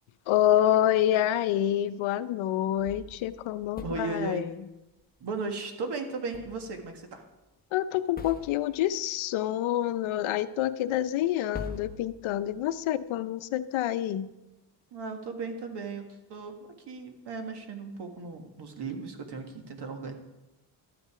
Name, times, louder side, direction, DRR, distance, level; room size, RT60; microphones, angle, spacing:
voice 1, 0.3-4.5 7.7-14.3, left 12 dB, 90° left, 13 dB, 0.7 m, -27 dB
sound 1, 2.8-4.4 6.3-7.0 7.3-7.4 8.2-8.9 10.9-11.0 11.5-12.7, left 4 dB, 20° left, 1.2 m, -44 dB
voice 2, 3.8-4.4 5.2-7.2 14.9-16.6 16.9-20.1, right 4 dB, 60° right, 5 dB, 1.8 m, -36 dB
12.5 x 8.8 x 4.8 m, 1.0 s
cardioid pair, 130°, 46 cm